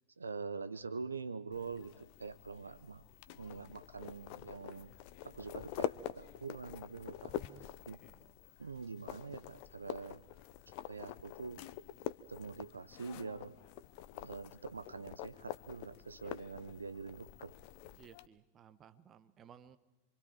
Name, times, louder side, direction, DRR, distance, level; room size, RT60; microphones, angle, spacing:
voice 1, 0.2-3.0 3.3-4.9 5.2-7.3 7.9-8.0 8.6-10.2 10.7-11.6 12.3-13.6 14.2-17.6, right 4 dB, 75° right, 15 dB, 0.8 m, -45 dB
sound 1, 1.5-18.3, left 12 dB, 45° left, 0.8 m, -46 dB
voice 2, 7.2-8.3 16.2-16.3 17.9-19.8, right 7 dB, 25° right, 12 dB, 1.2 m, -59 dB
28.0 x 24.5 x 4.6 m, 1.1 s
figure-of-eight pair, 90°, 0 cm